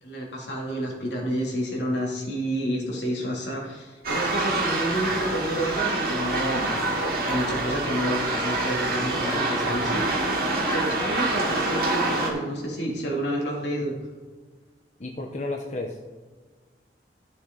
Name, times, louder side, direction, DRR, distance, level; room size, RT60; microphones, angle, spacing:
voice 1, 0.0-10.2 10.7-14.0, equal, 80° left, -2 dB, 2.8 m, -29 dB
sound 1, 4.0-12.3, right 2 dB, 55° right, 2.3 m, -26 dB
voice 2, 15.0-16.1, left 2 dB, 40° left, 2 dB, 0.8 m, -32 dB
13.5 x 6.5 x 3.9 m, 1.4 s
head